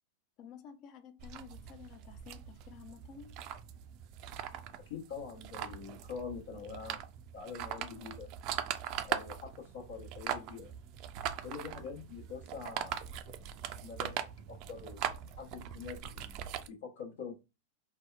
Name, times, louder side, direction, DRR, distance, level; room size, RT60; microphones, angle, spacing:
voice 1, 0.4-3.4, left 7 dB, 45° left, 0.5 m, -52 dB
sound 1, 1.2-16.7, right 10 dB, 50° right, 0.3 m, -41 dB
voice 2, 4.9-7.0 7.3-8.3 9.0-10.7 11.4-13.0 13.2-14.2 14.5-17.3, left 6 dB, 75° left, 1.0 m, -45 dB
2.7 x 2.1 x 2.3 m
hypercardioid pair, 110°, 0 cm